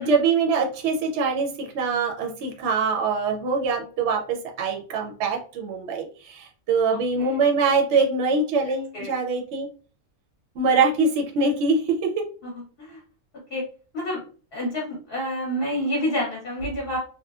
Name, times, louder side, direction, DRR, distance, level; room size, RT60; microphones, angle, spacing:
voice 1, 0.0-9.7 10.6-12.1, right 4 dB, 65° right, 1 dB, 0.8 m, -23 dB
voice 2, 6.9-7.4 8.6-9.1 12.4-13.0 13.5-13.6 13.9-14.2 14.5-17.0, equal, 50° left, -3 dB, 0.8 m, -29 dB
2.9 x 2.1 x 2.3 m, 0.39 s
omnidirectional pair, 1.5 m